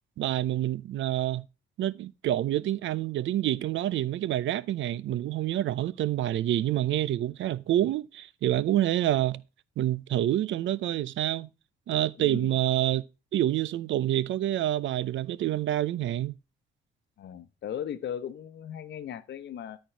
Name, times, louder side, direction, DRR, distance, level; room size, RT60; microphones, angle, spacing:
voice 1, 0.2-1.4 1.8-9.4 9.8-11.5 11.9-13.0 13.3-16.4, right 13 dB, 75° right, 0.6 m, -27 dB
voice 2, 12.2-12.6 17.2-19.8, left 9 dB, 65° left, 1.0 m, -37 dB
13.0 x 4.6 x 4.5 m
cardioid pair, 90°, 20 cm